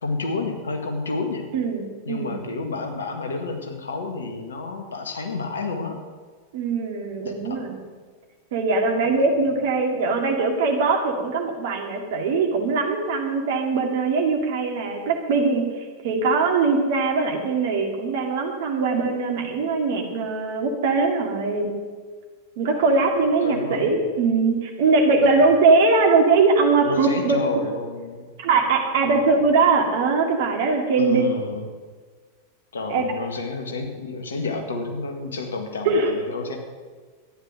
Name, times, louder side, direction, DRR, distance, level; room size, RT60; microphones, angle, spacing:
voice 1, 0.0-1.5 2.0-6.0 7.2-7.6 9.0-9.5 22.7-23.1 23.4-23.9 25.1-25.3 26.8-28.3 29.0-29.4 30.9-31.7 32.7-36.6, left 3 dB, 70° left, 4 dB, 1.8 m, -30 dB
voice 2, 1.5-2.4 6.5-7.8 8.5-21.7 22.6-27.4 28.4-31.4 32.9-33.1 35.9-36.2, right 4 dB, 50° right, 3 dB, 2.2 m, -21 dB
12.5 x 10.5 x 6.4 m, 1.5 s
figure-of-eight pair, 90°, 0 cm